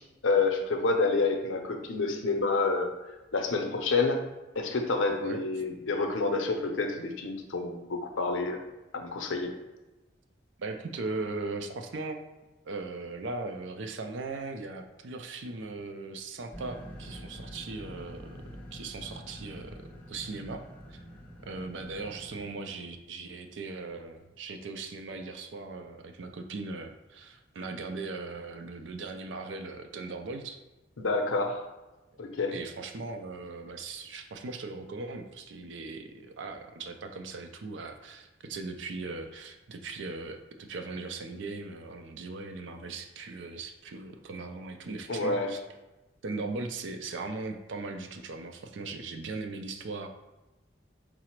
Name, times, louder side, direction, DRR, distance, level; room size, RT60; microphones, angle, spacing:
voice 1, 0.0-2.9 3.3-4.2 4.6-8.6 8.9-9.5 31.0-31.6 32.2-32.5 45.1-45.5, left 3 dB, 90° left, 4 dB, 0.6 m, -28 dB
voice 2, 10.6-12.2 12.6-18.4 18.7-20.6 20.9-21.0 21.5-30.6 32.5-45.6 46.2-50.1, right 3 dB, 75° right, 6 dB, 0.4 m, -39 dB
sound 1, 16.5-22.5, equal, 10° left, 0.5 m, -46 dB
4.8 x 2.0 x 4.4 m, 1.1 s
head